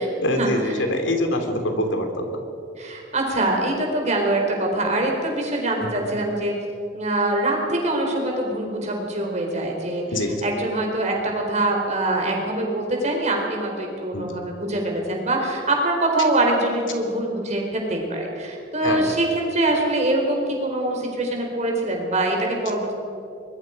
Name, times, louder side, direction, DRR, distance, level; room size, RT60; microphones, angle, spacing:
voice 1, 0.2-2.3 5.8-5.9 10.1-10.5 14.1-14.3 18.8-19.2, left 1 dB, 80° left, 5 dB, 2.7 m, -24 dB
voice 2, 2.8-6.5 6.9-10.0 10.4-22.9, right 1 dB, 40° right, 1 dB, 4.3 m, -24 dB
23.5 x 21.0 x 5.2 m, 2.6 s
head